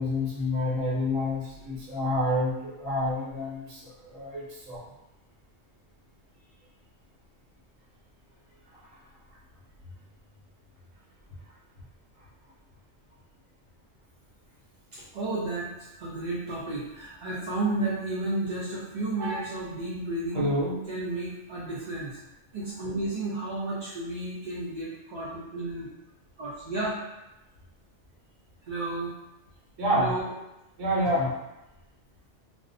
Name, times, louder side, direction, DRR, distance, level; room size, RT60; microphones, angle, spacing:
voice 1, 0.0-4.8 19.2-19.4 20.3-20.8 29.8-30.1 30.8-31.3, left 1 dB, 80° right, -6 dB, 1.1 m, -28 dB
voice 2, 14.9-20.5 20.9-22.2 22.5-25.9 26.4-27.0 28.7-29.1 29.9-30.2, right 2 dB, 60° right, -8 dB, 0.4 m, -32 dB
2.4 x 2.0 x 2.5 m, 0.92 s
omnidirectional pair, 1.3 m